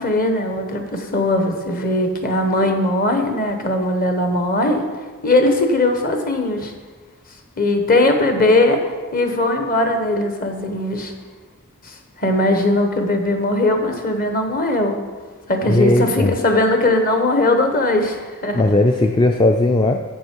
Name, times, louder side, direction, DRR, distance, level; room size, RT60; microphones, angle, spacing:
voice 1, 0.0-4.8 5.2-6.7 7.6-11.1 11.8-15.0 15.5-18.6, left 2 dB, 40° left, 5 dB, 1.2 m, -19 dB
voice 2, 15.7-16.4 18.5-20.0, left 1 dB, 20° left, 5 dB, 0.4 m, -17 dB
11.5 x 7.9 x 4.6 m, 1.4 s
head